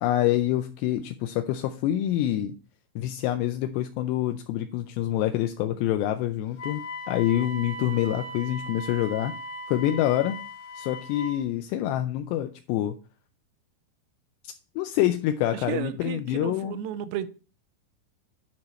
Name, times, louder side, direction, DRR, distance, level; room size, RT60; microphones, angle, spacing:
voice 1, 0.0-2.5 3.0-9.3 9.7-10.4 10.8-13.0 14.8-16.8, left 12 dB, 85° left, 2.7 m, -26 dB
Wind instrument woodwind instrument, 6.6-11.4, left 1 dB, 60° left, 2.4 m, -38 dB
voice 2, 15.5-17.3, right 11 dB, 90° right, 2.8 m, -33 dB
10.5 x 4.8 x 4.1 m
omnidirectional pair, 5.0 m